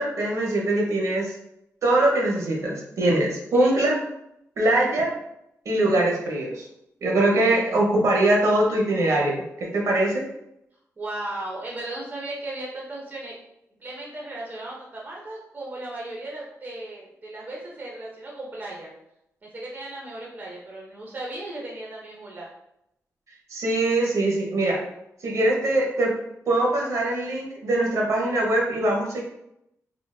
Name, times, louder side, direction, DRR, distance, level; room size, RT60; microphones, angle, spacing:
voice 1, 0.0-1.3 1.8-4.0 4.6-5.1 5.6-6.7 7.0-10.3 23.5-24.8 25.2-26.1 26.5-29.2, right 1 dB, 65° right, -1 dB, 0.8 m, -22 dB
voice 2, 11.0-13.4 13.8-18.9 19.4-22.5, right 2 dB, 30° right, -3 dB, 0.6 m, -36 dB
3.7 x 2.4 x 2.3 m, 0.80 s
wide cardioid pair, 130°, 6 cm